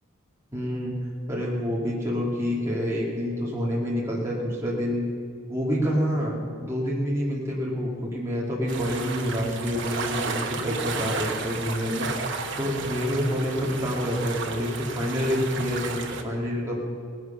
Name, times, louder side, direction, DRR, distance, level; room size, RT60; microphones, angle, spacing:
voice 1, 0.5-1.0 1.3-5.1 5.5-16.8, equal, 10° right, -5 dB, 2.3 m, -27 dB
sound 1, 8.7-16.2, right 4 dB, 55° right, 1.2 m, -33 dB
18.5 x 11.0 x 5.8 m, 2.2 s
head